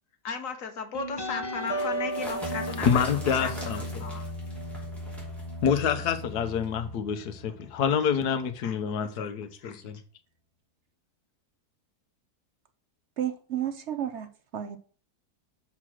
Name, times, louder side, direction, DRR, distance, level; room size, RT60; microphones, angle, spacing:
voice 1, 0.2-4.3 7.5-7.6 7.9-8.2 8.6-9.8, left 5 dB, 60° left, 1.4 m, -37 dB
sound 1, 0.9-8.1, right 1 dB, 20° left, 1.0 m, -35 dB
sound 2, 1.5-6.9, equal, ahead, 2.8 m, -43 dB
voice 2, 2.9-3.8 5.6-10.0, left 7 dB, 85° left, 1.4 m, -27 dB
voice 3, 13.2-14.3 14.5-14.8, right 10 dB, 55° right, 0.9 m, -31 dB
6.0 x 4.9 x 6.2 m
omnidirectional pair, 1.7 m